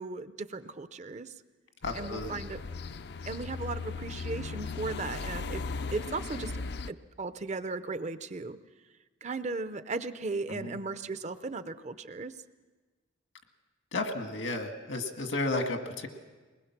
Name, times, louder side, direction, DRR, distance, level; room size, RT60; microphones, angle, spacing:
voice 1, 0.0-1.3 1.9-2.6 3.2-5.7 5.9-6.5 6.9-8.6 9.2-12.3, right 3 dB, 35° right, 13 dB, 0.6 m, -36 dB
voice 2, 1.8-2.3 10.5-10.8 13.9-16.1, left 2 dB, 80° left, 5 dB, 1.8 m, -33 dB
sound 1, 1.8-6.9, left 4 dB, 60° left, 0.5 m, -37 dB
21.5 x 20.0 x 6.0 m, 1.3 s
head